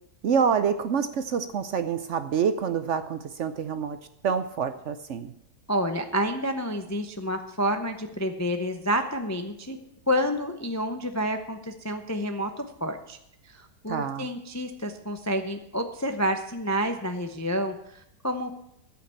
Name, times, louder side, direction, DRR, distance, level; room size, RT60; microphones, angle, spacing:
voice 1, 0.2-4.0 4.2-5.3 13.9-14.3, right 7 dB, 60° right, 11 dB, 0.8 m, -27 dB
voice 2, 5.7-9.8 10.1-13.2 13.5-18.5, equal, 20° left, 6 dB, 0.4 m, -29 dB
13.5 x 5.9 x 8.5 m, 0.81 s
omnidirectional pair, 1.7 m